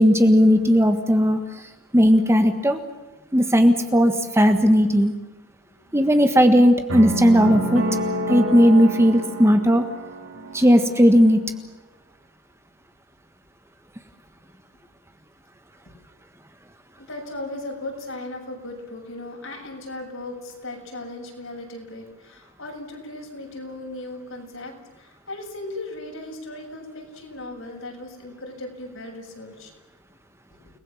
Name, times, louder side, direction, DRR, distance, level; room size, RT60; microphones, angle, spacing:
voice 1, 0.0-1.4 1.9-2.8 3.3-5.1 5.9-7.8 8.3-9.8 10.5-11.4, equal, 10° right, 7 dB, 1.5 m, -16 dB
voice 2, 5.6-6.0 10.3-10.8 15.9-16.0 17.0-29.7 30.5-30.6, left 2 dB, 65° left, 1 dB, 7.5 m, -37 dB
sound 1, 6.9-11.0, right 1 dB, 70° right, 7.2 m, -28 dB
30.0 x 20.5 x 7.4 m, 1.2 s
head